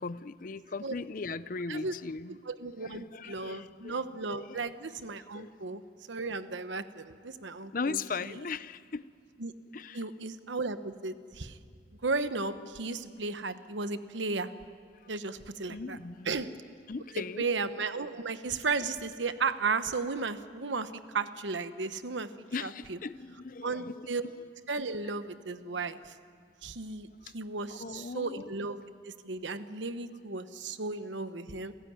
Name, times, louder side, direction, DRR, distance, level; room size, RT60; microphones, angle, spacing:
voice 1, 0.0-2.4 2.8-4.0 4.3-4.7 5.3-5.5 7.7-9.0 9.7-10.0 15.7-16.3 16.9-17.5 22.5-24.1 27.7-28.5, left 4 dB, 45° left, 16 dB, 0.5 m, -38 dB
voice 2, 2.3-5.8 6.1-8.3 9.4-9.5 9.9-11.6 12.0-14.5 15.1-16.0 16.3-16.5 17.1-22.3 22.6-23.0 23.6-24.2 24.7-26.1 26.6-27.1 27.3-28.8 29.0-31.7, right 4 dB, 80° right, 11 dB, 1.0 m, -34 dB
28.5 x 15.0 x 9.3 m, 2.3 s
head